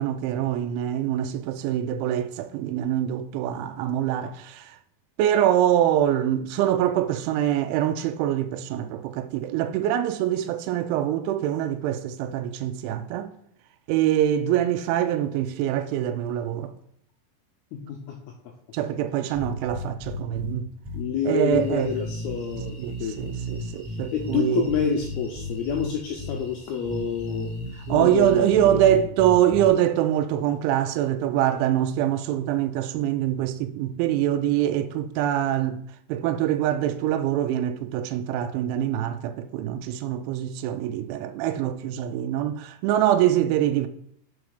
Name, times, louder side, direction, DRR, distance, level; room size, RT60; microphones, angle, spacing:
voice 1, 0.0-4.8 5.2-13.3 13.9-16.7 18.7-20.7 21.2-21.9 22.8-24.7 27.9-35.8 36.1-43.9, right 11 dB, 90° right, 2.9 m, -24 dB
sound 1, 19.3-20.5 20.8-21.0 21.5-24.3 24.7-25.8 26.2-26.3 26.8-29.7, equal, 5° right, 1.7 m, -34 dB
voice 2, 20.9-23.2 24.1-27.5 27.9-28.8, left 6 dB, 85° left, 2.2 m, -28 dB
sound 2, 21.6-28.6, left 2 dB, 10° left, 2.9 m, -51 dB
6.0 x 4.8 x 6.3 m
omnidirectional pair, 5.3 m